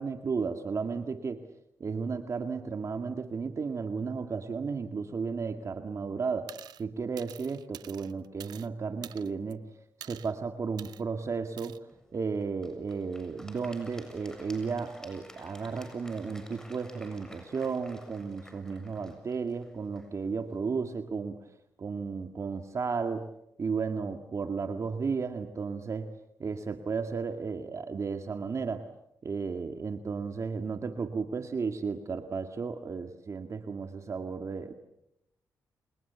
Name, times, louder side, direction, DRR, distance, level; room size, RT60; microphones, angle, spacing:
voice 1, 0.0-1.4 1.8-6.5 6.8-9.6 10.0-21.5 21.8-23.3 23.6-26.1 26.4-28.9 29.2-34.7, right 5 dB, 45° right, 7 dB, 1.9 m, -34 dB
sound 1, 6.5-6.8 7.2-8.7 9.0-9.5 10.0-10.3 10.8-11.0 11.6-11.8, right 11 dB, 85° right, 1.0 m, -47 dB
Applause / Crowd, 11.9-21.0, left 1 dB, 10° left, 7.4 m, -53 dB
29.5 x 28.0 x 7.0 m, 0.83 s
cardioid pair, 80°, 7 cm